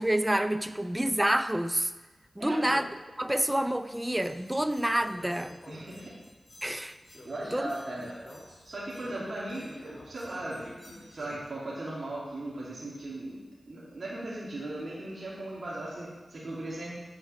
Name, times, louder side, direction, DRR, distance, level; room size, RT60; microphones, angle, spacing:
voice 1, 0.0-1.9 2.4-2.9 3.2-5.5 6.6-7.0 7.5-7.7, right 1 dB, 10° right, 11 dB, 0.5 m, -28 dB
voice 2, 2.4-2.8 5.7-6.1 7.2-8.1 8.6-16.9, right 1 dB, 60° right, -8 dB, 2.7 m, -38 dB
sound 1, 4.2-11.5, left 1 dB, 45° left, 2.3 m, -50 dB
9.3 x 4.7 x 6.6 m, 1.2 s
cardioid pair, 50°, 0 cm